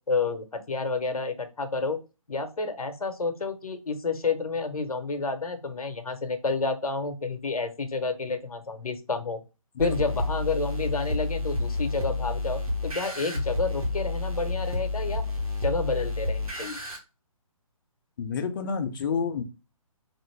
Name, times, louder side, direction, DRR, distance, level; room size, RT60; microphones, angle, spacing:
voice 1, 0.1-2.0 2.3-9.4 9.8-15.2 15.6-16.8, left 3 dB, 90° left, 0.7 m, -30 dB
voice 2, 9.8-10.1 18.2-19.4, left 6 dB, 35° left, 0.5 m, -29 dB
sound 1, 9.8-17.0, left 2 dB, 80° right, 1.4 m, -30 dB
3.2 x 2.5 x 3.1 m
figure-of-eight pair, 145°, 18 cm